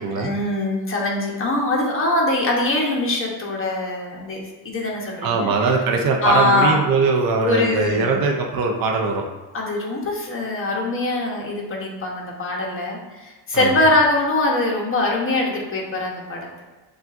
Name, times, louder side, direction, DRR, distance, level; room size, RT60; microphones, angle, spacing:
voice 1, 0.2-5.5 6.2-6.8 7.4-8.2 9.5-16.5, left 2 dB, 30° left, -2 dB, 1.0 m, -22 dB
voice 2, 5.2-9.2 13.5-13.8, right 4 dB, 50° right, 2 dB, 0.6 m, -21 dB
7.1 x 2.4 x 2.5 m, 1.2 s
cardioid pair, 125°, 43 cm